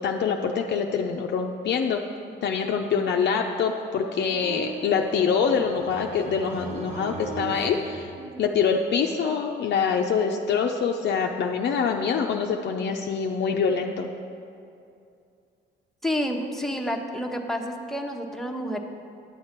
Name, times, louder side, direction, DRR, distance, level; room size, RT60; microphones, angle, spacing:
voice 1, 0.0-2.0 2.4-8.1 8.4-14.1, left 6 dB, 60° left, 2 dB, 0.5 m, -25 dB
sound 1, 4.2-8.6, right 3 dB, 65° right, 1.6 m, -40 dB
sound 2, 4.4-8.7, right 4 dB, 35° right, 0.7 m, -42 dB
voice 2, 16.0-18.8, equal, ahead, 2 dB, 0.9 m, -29 dB
10.5 x 7.3 x 4.4 m, 2.5 s
cardioid pair, 90°, 20 cm